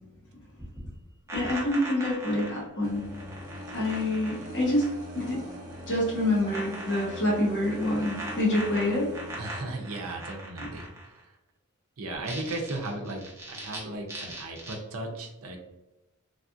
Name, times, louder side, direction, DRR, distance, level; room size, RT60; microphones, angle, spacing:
sound 1, 0.6-5.3 5.5-6.1 6.5-11.2 12.1-13.8 14.1-14.8, right 1 dB, 15° right, 0.8 m, -41 dB
voice 1, 1.3-3.0 3.7-4.9 5.1-5.4 5.9-9.1 10.6-10.7, left 1 dB, 55° left, -4 dB, 1.2 m, -27 dB
sound 2, 2.8-9.6, equal, 40° right, 0.9 m, -41 dB
voice 2, 9.4-11.1 12.0-13.2 13.5-15.6, right 2 dB, 75° right, 2 dB, 0.6 m, -36 dB
3.4 x 2.4 x 2.5 m, 1.0 s
head